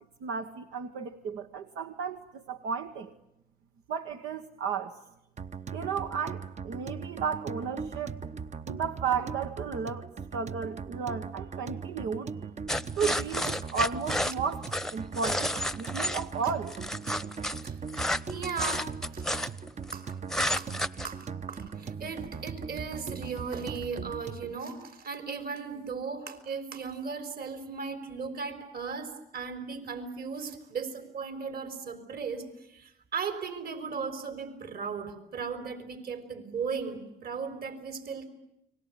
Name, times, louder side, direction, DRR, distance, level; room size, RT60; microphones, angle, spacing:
voice 1, 0.2-3.1 3.9-5.0 5.7-8.2 8.7-12.3 13.0-14.7 14.9-15.5 15.8-16.7, right 6 dB, 80° right, 6 dB, 1.4 m, -33 dB
sound 1, 5.4-24.6, right 6 dB, 35° right, 0.9 m, -39 dB
sound 2, 12.7-16.2 16.7-19.9 20.3-21.1, left 1 dB, ahead, 1.0 m, -31 dB
voice 2, 18.3-19.2 19.9-20.1 20.6-20.7 21.0-38.3, right 5 dB, 50° right, 9 dB, 4.1 m, -37 dB
30.0 x 20.5 x 9.3 m, 0.84 s
supercardioid pair, 70°, 20 cm